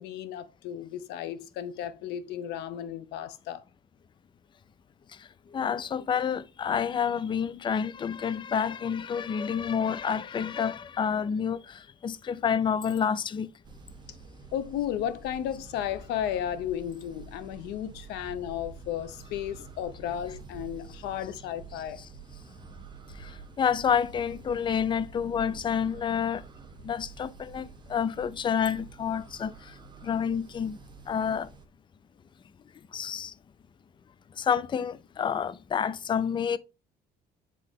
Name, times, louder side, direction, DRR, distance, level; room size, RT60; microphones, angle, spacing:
voice 1, 0.0-3.6 14.5-22.0, left 10 dB, 85° left, 0.7 m, -34 dB
voice 2, 5.2-13.5 23.2-26.4 26.8-29.7 30.0-30.8 31.1-31.5 32.9-33.3 34.4-36.6, left 7 dB, 30° left, 0.4 m, -29 dB
sound 1, 13.6-31.7, right 5 dB, 25° right, 1.1 m, -48 dB
7.6 x 3.9 x 3.6 m
cardioid pair, 110°, 17 cm